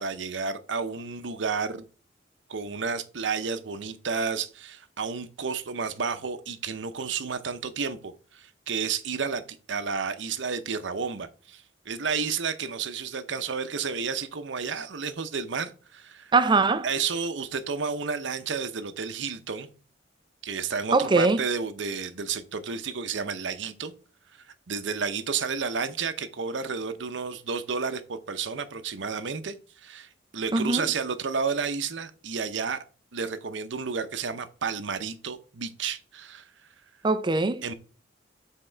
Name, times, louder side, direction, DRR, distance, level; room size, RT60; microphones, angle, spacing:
voice 1, 0.0-1.9 2.5-16.3 16.8-19.7 20.4-23.9 24.7-32.8 33.1-36.5 37.6-37.7, right 5 dB, 70° right, 0.7 m, -31 dB
voice 2, 16.3-16.9 20.9-21.4 30.5-30.9 37.0-37.6, right 3 dB, 25° right, 0.5 m, -22 dB
7.6 x 3.6 x 4.4 m
head